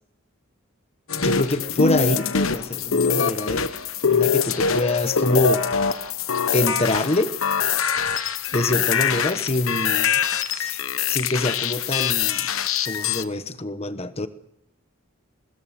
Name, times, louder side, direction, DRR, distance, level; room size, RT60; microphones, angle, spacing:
sound 1, 1.1-13.2, left 6 dB, 90° left, 1.1 m, -23 dB
voice 1, 1.1-3.7 4.1-5.7 6.5-7.3 8.5-10.2 10.5-10.8 11.1-12.5 12.8-14.3, left 2 dB, 30° left, 1.1 m, -25 dB
21.5 x 20.0 x 6.5 m
head